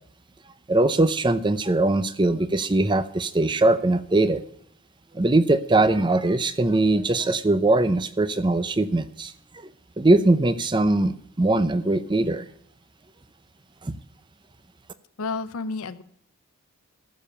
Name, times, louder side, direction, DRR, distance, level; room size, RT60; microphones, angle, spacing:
voice 1, 0.7-4.4 5.1-9.3 9.6-9.7 10.0-12.4 13.8-14.0, right 2 dB, 20° right, 13 dB, 0.6 m, -21 dB
voice 2, 15.2-16.0, left 4 dB, 75° left, 12 dB, 0.7 m, -30 dB
14.5 x 7.1 x 5.6 m, 0.70 s
head